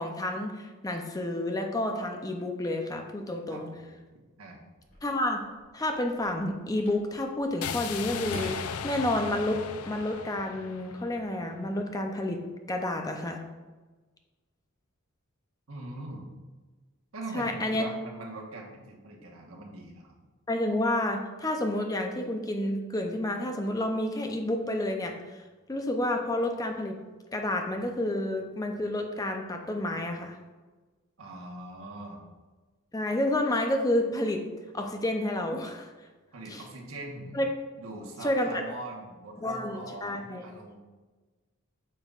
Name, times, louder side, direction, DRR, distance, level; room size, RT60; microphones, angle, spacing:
voice 1, 0.0-3.7 5.0-5.4 5.7-8.6 8.8-12.4 12.7-13.4 17.3-17.8 20.5-25.4 25.7-27.0 27.3-30.4 32.9-34.4 34.7-35.9 36.5-36.6 37.3-37.5 38.2-38.6 39.4-40.4, left 1 dB, 15° left, 4 dB, 0.5 m, -30 dB
voice 2, 3.5-3.9 4.4-4.6 15.7-16.3 17.1-20.2 31.2-32.2 36.3-37.4 37.8-40.8, right 2 dB, 75° right, 0 dB, 1.3 m, -42 dB
Telephone, 4.7-9.5, left 1 dB, 60° left, 2.1 m, -50 dB
sound 1, 7.6-11.7, left 7 dB, 90° left, 0.4 m, -37 dB
9.0 x 5.5 x 2.4 m, 1.3 s
head